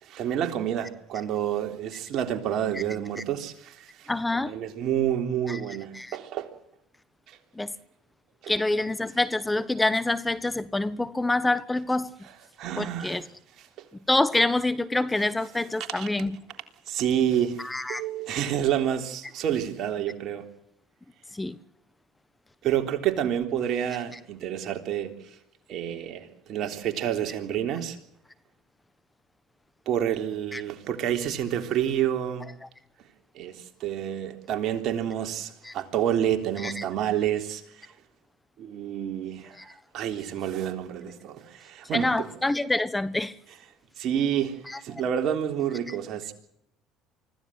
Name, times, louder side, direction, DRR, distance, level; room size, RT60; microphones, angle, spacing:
voice 1, 0.0-6.5 7.3-7.4 8.4-8.5 12.6-13.2 16.0-16.1 16.9-20.4 22.6-25.4 25.7-28.0 29.9-32.5 33.3-37.9 38.6-39.6 39.9-42.3 44.0-46.3, right 10 dB, 60° right, 3.6 m, -29 dB
voice 2, 4.1-4.6 5.5-5.6 5.9-6.2 7.5-7.7 8.5-12.1 12.8-13.2 14.1-16.4 17.6-18.0 21.3-21.6 30.5-30.6 32.6-32.7 35.6-35.7 36.6-36.8 39.6-39.7 41.9-43.4 44.7-44.8 45.9-46.0, left 2 dB, 15° left, 1.3 m, -26 dB
25.0 x 16.0 x 7.8 m
supercardioid pair, 75°, 0 cm